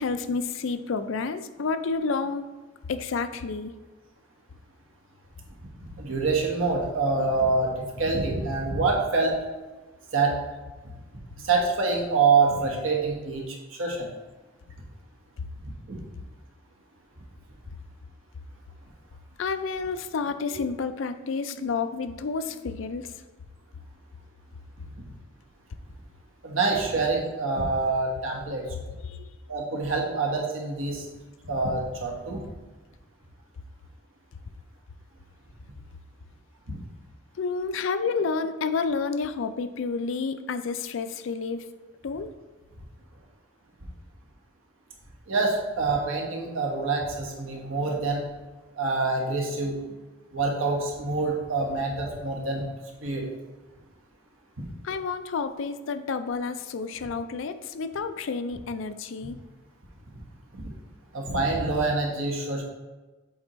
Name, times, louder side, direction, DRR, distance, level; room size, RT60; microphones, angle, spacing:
voice 1, 0.0-2.5 2.9-3.7 15.4-15.5 19.4-23.1 28.7-29.3 37.4-41.7 42.0-42.3 54.8-59.4, left 4 dB, 65° left, 10 dB, 0.4 m, -30 dB
voice 2, 6.0-9.3 10.1-10.4 11.4-14.1 15.9-16.0 26.4-28.6 29.5-31.0 31.4-32.4 36.7-36.8 45.3-48.2 48.8-49.8 50.3-52.6 53.0-53.2 61.1-62.6, right 3 dB, 80° right, -1 dB, 1.3 m, -26 dB
7.3 x 4.4 x 3.0 m, 1.2 s
head